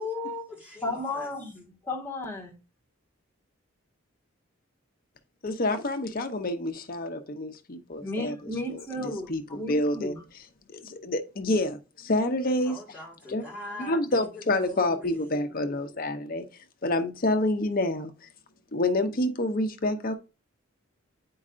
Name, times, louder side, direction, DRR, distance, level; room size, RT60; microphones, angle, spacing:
voice 1, 0.0-1.3 12.6-15.6, left 2 dB, 5° right, 1.9 m, -40 dB
voice 2, 0.8-2.5 8.0-10.2, left 2 dB, 10° left, 1.4 m, -34 dB
voice 3, 5.4-8.3 8.7-12.8 13.3-13.4 13.8-16.4 16.8-18.1 18.7-20.1, left 1 dB, 45° left, 0.7 m, -28 dB
8.5 x 4.6 x 2.5 m
head